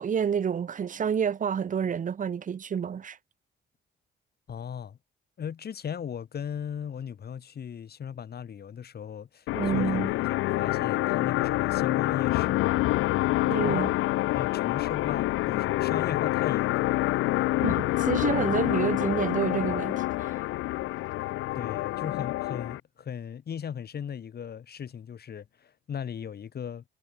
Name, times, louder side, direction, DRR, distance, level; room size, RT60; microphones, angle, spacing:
voice 1, 0.0-3.2 9.5-10.1 13.4-13.9 17.6-20.4, right 7 dB, 40° right, 0.9 m, -29 dB
voice 2, 4.5-5.0 5.4-10.3 10.6-12.7 13.5-13.9 14.3-17.1 21.5-26.8, left 8 dB, 55° left, 3.9 m, -37 dB
sound 1, 9.5-22.8, left 17 dB, 90° left, 0.7 m, -27 dB
sound 2, 9.5-17.0, left 5 dB, 35° left, 4.2 m, -52 dB
cardioid pair, 90°, 20 cm